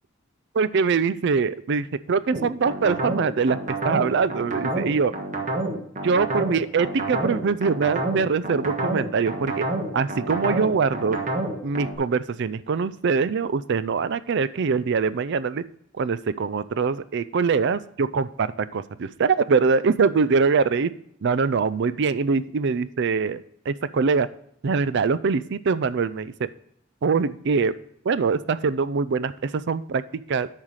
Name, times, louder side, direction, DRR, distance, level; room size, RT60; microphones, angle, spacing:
voice 1, 0.5-3.6 3.8-5.1 6.0-9.7 9.9-11.2 11.6-15.6 16.0-20.9 21.2-24.3 24.6-26.3 27.0-27.7 28.0-30.5, right 5 dB, 60° right, 16 dB, 0.4 m, -23 dB
sound 1, 2.3-11.9, right 2 dB, 40° right, 1.4 m, -28 dB
8.7 x 5.8 x 4.7 m, 0.71 s
head